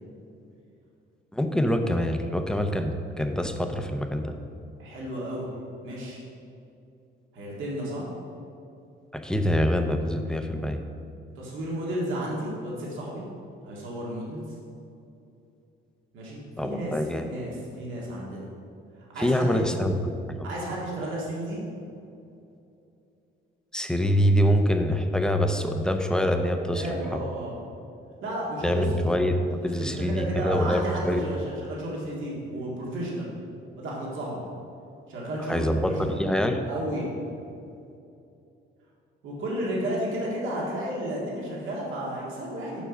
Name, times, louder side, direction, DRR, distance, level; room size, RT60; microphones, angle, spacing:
voice 1, 1.3-4.3 9.1-10.8 16.6-17.3 19.2-20.5 23.7-26.9 27.1-27.2 28.6-29.4 29.6-31.2 35.5-36.6, equal, 5° left, 5 dB, 0.6 m, -25 dB
voice 2, 4.8-5.5 5.8-6.2 7.3-8.0 11.4-13.2 13.6-14.4 16.1-18.5 19.0-19.6 20.4-21.6 26.7-27.5 28.2-29.0 29.6-33.3 33.8-34.4 35.1-36.2 36.6-37.1 39.2-42.8, right 1 dB, 80° right, -4 dB, 1.9 m, -32 dB
7.1 x 5.8 x 5.1 m, 2.7 s
cardioid pair, 90°, 20 cm